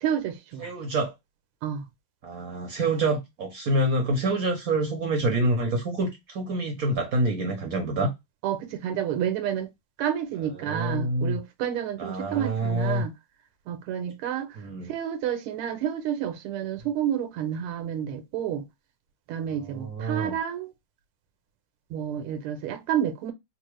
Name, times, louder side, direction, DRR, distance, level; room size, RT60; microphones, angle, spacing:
voice 1, 0.0-0.7 1.6-1.8 8.4-9.7 10.0-13.1 13.7-14.6 14.9-18.6 19.3-20.7 21.9-23.3, right 9 dB, 85° right, 1.5 m, -30 dB
voice 2, 0.6-1.1 2.2-8.1 10.4-11.4 12.0-13.1 14.6-14.9 19.6-20.3, right 2 dB, 65° right, 0.9 m, -27 dB
4.0 x 2.0 x 3.0 m
omnidirectional pair, 2.4 m